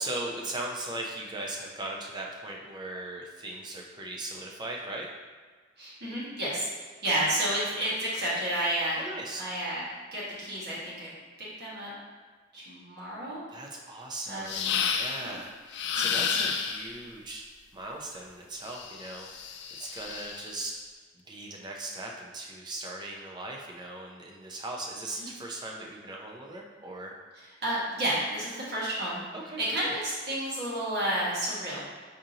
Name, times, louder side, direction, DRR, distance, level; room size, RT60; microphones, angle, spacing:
voice 1, 0.0-5.1 8.9-9.4 13.5-17.4 17.7-20.7 21.3-27.1 29.3-29.9, right 2 dB, 25° right, -1 dB, 0.5 m, -38 dB
voice 2, 5.8-9.0 9.4-9.8 10.1-11.1 11.6-11.9 12.5-13.4 14.3-14.6 15.2-15.4 25.1-25.3 27.6-29.2 29.6-31.9, right 1 dB, 60° right, -8 dB, 1.4 m, -31 dB
sound 1, 14.5-15.3 15.7-17.0 18.7-20.6, left 6 dB, 60° left, 0.3 m, -31 dB
4.8 x 2.7 x 2.8 m, 1.5 s
head